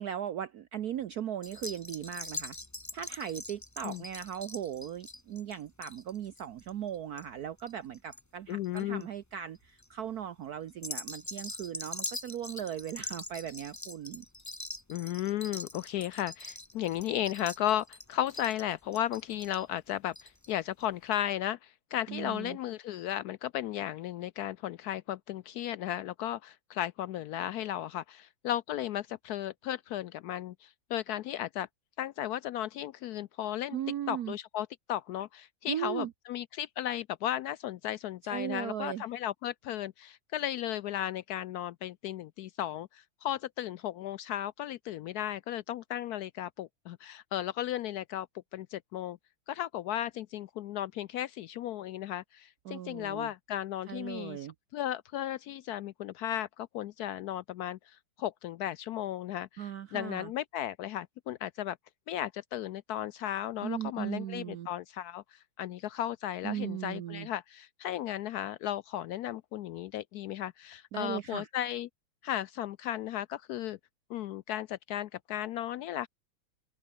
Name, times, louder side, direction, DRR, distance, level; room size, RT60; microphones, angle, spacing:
voice 1, 0.0-2.6 2.9-14.2 22.1-22.6 33.7-34.4 35.7-36.1 38.2-39.0 52.6-53.3 53.9-54.5 59.6-60.3 63.6-64.7 66.4-67.3 70.9-71.5, right 10 dB, 60° right, 1.1 m, -38 dB
sound 1, 1.4-8.2 8.5-9.0 9.5-9.9 10.7-20.5 20.8-20.9 21.1-21.2, left 1 dB, 10° left, 1.3 m, -43 dB
voice 2, 8.5-9.0 14.9-31.7 32.0-33.8 34.1-48.3 48.5-49.2 49.5-54.5 54.7-61.8 62.1-71.9 72.2-73.8 74.1-76.1, left 12 dB, 85° left, 0.8 m, -35 dB
open air
omnidirectional pair, 2.2 m